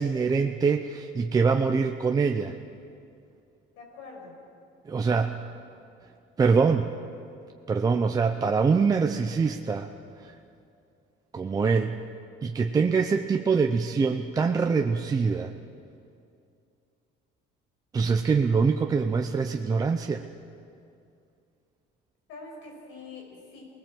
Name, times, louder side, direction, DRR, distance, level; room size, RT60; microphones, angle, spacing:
voice 1, 0.0-2.6 4.9-5.4 6.4-6.9 7.7-9.9 10.2-10.3 11.3-11.9 12.4-15.5 17.9-20.2, right 5 dB, 20° right, 4 dB, 0.7 m, -24 dB
voice 2, 3.8-4.3 22.3-23.7, left 3 dB, 85° left, -1 dB, 6.5 m, -44 dB
28.0 x 19.5 x 7.8 m, 2.5 s
cardioid pair, 170°, 19 cm